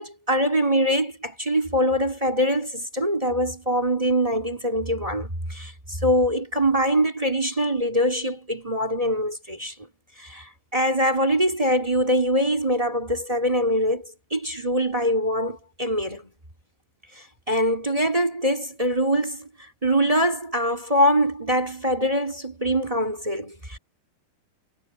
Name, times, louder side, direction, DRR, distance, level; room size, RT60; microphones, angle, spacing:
voice 1, 0.0-9.7 10.2-10.4 10.7-16.3 17.5-19.5 19.8-23.8, equal, 10° right, 2.6 m, -23 dB
omnidirectional pair, 4.7 m